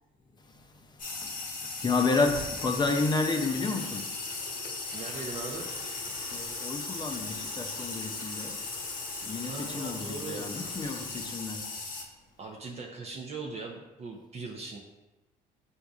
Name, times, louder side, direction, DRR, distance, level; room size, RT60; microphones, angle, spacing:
sound 1, 1.0-12.0, left 3 dB, 55° left, 0.9 m, -37 dB
voice 1, 1.8-4.0 6.3-8.5 9.2-11.6, left 3 dB, 25° left, 0.6 m, -30 dB
Water tap faucet / Fill (with liquid), 2.2-12.4, left 3 dB, 80° left, 1.0 m, -48 dB
voice 2, 4.9-5.9 9.5-10.5 12.4-14.8, right 3 dB, 40° right, 0.6 m, -40 dB
7.7 x 2.6 x 2.4 m
cardioid pair, 110°, 17 cm